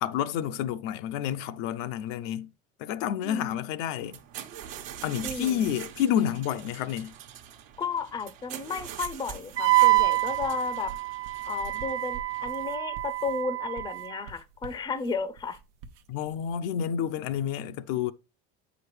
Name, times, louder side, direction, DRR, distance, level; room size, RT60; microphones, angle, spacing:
voice 1, 0.0-2.5 2.8-4.2 5.0-7.1 16.1-18.1, left 10 dB, 75° left, 0.6 m, -29 dB
voice 2, 3.2-3.6 5.2-5.8 7.8-10.9 11.5-15.6, left 5 dB, 10° left, 0.5 m, -33 dB
sound 1, 4.0-12.6, right 9 dB, 65° right, 1.1 m, -43 dB
Wind instrument woodwind instrument, 9.6-14.2, right 20 dB, 40° right, 0.5 m, -26 dB
sound 2, 10.0-16.6, right 5 dB, 85° right, 0.8 m, -47 dB
7.6 x 5.0 x 3.1 m
supercardioid pair, 115°, 37 cm